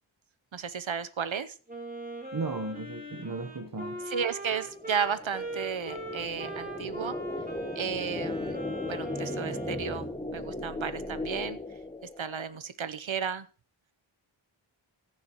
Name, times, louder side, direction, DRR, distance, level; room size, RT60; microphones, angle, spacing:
voice 1, 0.5-1.5 4.1-7.2 7.8-8.6 8.9-11.6 12.2-13.5, right 7 dB, 70° right, 0.8 m, -33 dB
Wind instrument woodwind instrument, 1.7-10.2, right 1 dB, 15° right, 3.5 m, -40 dB
voice 2, 2.3-4.0, right 3 dB, 45° right, 1.0 m, -35 dB
sound 1, 3.6-12.5, left 1 dB, 10° left, 1.1 m, -37 dB
14.0 x 10.5 x 3.0 m
wide cardioid pair, 55°, 48 cm